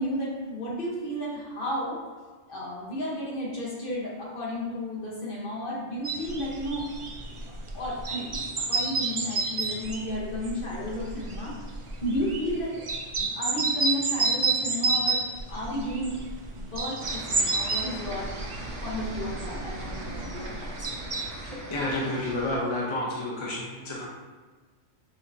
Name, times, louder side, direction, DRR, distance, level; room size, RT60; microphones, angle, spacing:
voice 1, 0.0-2.0 2.5-6.9 7.7-11.5 12.0-12.7 13.1-15.2 15.5-20.9, equal, 50° left, -5 dB, 1.2 m, -33 dB
sound 1, 6.0-21.3, right 3 dB, 50° right, 0.3 m, -30 dB
sound 2, 17.0-22.6, right 2 dB, 80° right, 1.3 m, -39 dB
voice 2, 21.4-24.1, left 1 dB, 30° left, -5 dB, 0.7 m, -30 dB
6.5 x 2.8 x 2.6 m, 1.4 s
omnidirectional pair, 1.2 m